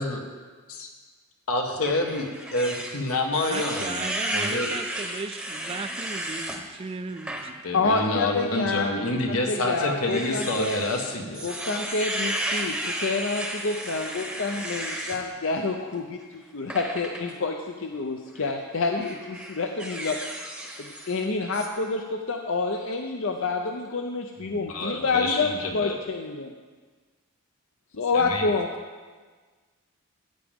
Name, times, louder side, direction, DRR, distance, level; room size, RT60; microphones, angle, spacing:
voice 1, 1.5-2.3 2.5-4.0 4.3-4.7 7.6-11.5 24.5-25.9 28.1-28.5, left 2 dB, 80° left, 2 dB, 1.4 m, -28 dB
sound 1, 1.8-6.6 7.1-7.4 7.9-8.0 9.1-15.2 16.7-17.3 18.3-18.5 19.0-21.2 21.5-21.7, right 1 dB, 5° right, 0.9 m, -33 dB
voice 2, 3.3-7.6, right 4 dB, 25° right, 10 dB, 0.3 m, -36 dB
voice 3, 7.7-10.8 11.4-20.2 20.8-26.5 27.9-28.7, left 3 dB, 60° left, 3 dB, 0.6 m, -28 dB
14.5 x 8.7 x 3.6 m, 1.4 s
head